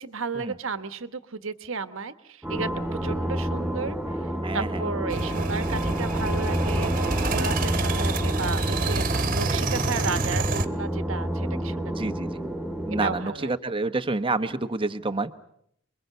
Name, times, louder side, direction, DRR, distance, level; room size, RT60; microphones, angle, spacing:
voice 1, 0.0-2.7 3.0-4.0 4.5-12.2 13.0-13.5, right 4 dB, 70° right, 11 dB, 1.3 m, -33 dB
sound 1, 2.4-13.2, right 1 dB, 5° right, 3.0 m, -29 dB
voice 2, 4.4-4.8 11.9-12.3 12.8-15.3, right 3 dB, 25° right, 9 dB, 1.1 m, -28 dB
sound 2, 5.1-10.7, right 2 dB, 40° right, 1.5 m, -27 dB
28.0 x 22.5 x 6.8 m, 0.72 s
head